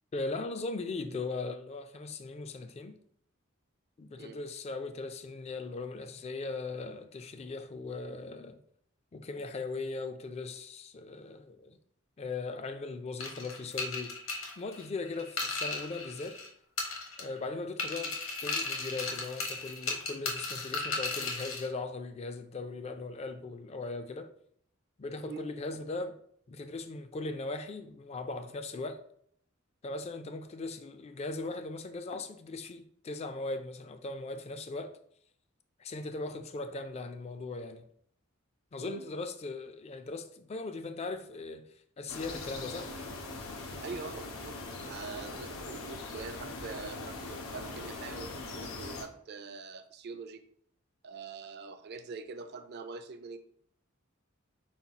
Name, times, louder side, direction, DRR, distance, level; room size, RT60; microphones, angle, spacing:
voice 1, 0.1-3.0 4.0-8.6 9.1-11.8 12.2-14.2 14.6-16.4 17.2-24.3 25.0-26.2 26.5-29.0 29.8-35.0 35.8-37.9 38.7-42.9, left 3 dB, 30° left, 0.3 m, -39 dB
sound 1, 13.2-16.5 16.8-17.4 17.8-21.7, left 3 dB, 70° left, 1.1 m, -36 dB
sound 2, 42.1-49.0, left 3 dB, 90° left, 0.8 m, -41 dB
voice 2, 43.8-50.4 51.0-53.4, right 4 dB, 55° right, 0.4 m, -44 dB
5.8 x 2.3 x 4.0 m
head